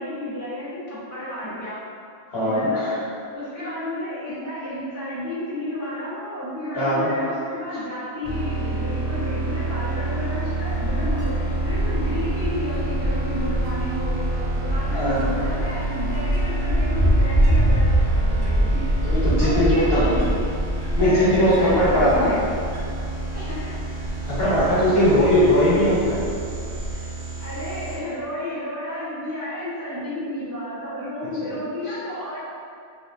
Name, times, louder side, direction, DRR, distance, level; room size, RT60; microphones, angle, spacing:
voice 1, 0.0-1.8 2.4-3.0 3.3-18.9 19.4-20.3 21.0-22.4 22.7-22.8 23.3-23.8 24.9-25.2 26.9-32.4, left 1 dB, 25° right, -11 dB, 0.4 m, -32 dB
voice 2, 2.3-3.0 6.7-7.1 14.9-15.2 19.0-20.2 21.0-22.3 24.3-26.2 31.4-31.5, equal, 65° left, -9 dB, 1.2 m, -20 dB
sound 1, 8.2-28.0, right 2 dB, 85° right, 1.1 m, -29 dB
Wind, 10.6-26.9, equal, 55° right, 0.7 m, -25 dB
3.0 x 2.9 x 2.4 m, 2.4 s
omnidirectional pair, 1.1 m